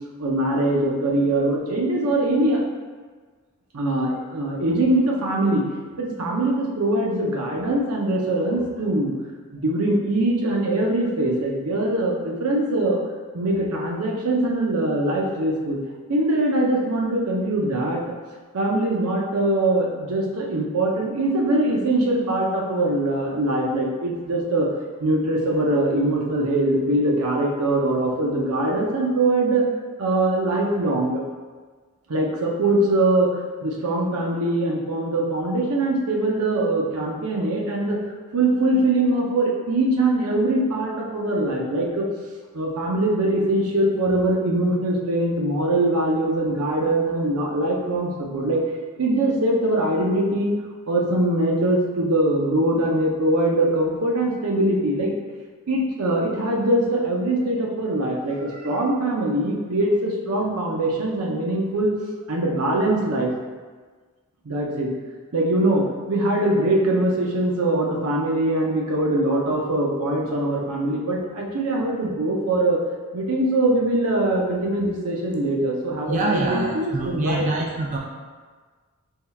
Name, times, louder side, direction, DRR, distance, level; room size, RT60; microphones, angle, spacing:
voice 1, 0.2-2.6 3.7-5.7 6.0-9.1 9.5-13.0 13.3-15.8 16.1-18.0 18.5-24.7 25.0-29.6 30.0-31.2 32.1-38.0 38.3-42.1 42.5-48.6 49.0-50.5 50.9-55.1 55.7-61.9 62.3-63.3 64.4-64.9 65.3-72.8 73.1-77.5, right 1 dB, 80° right, -1 dB, 0.7 m, -22 dB
voice 2, 76.1-78.0, right 2 dB, 35° right, -1 dB, 0.4 m, -25 dB
4.2 x 3.6 x 2.3 m, 1.4 s
head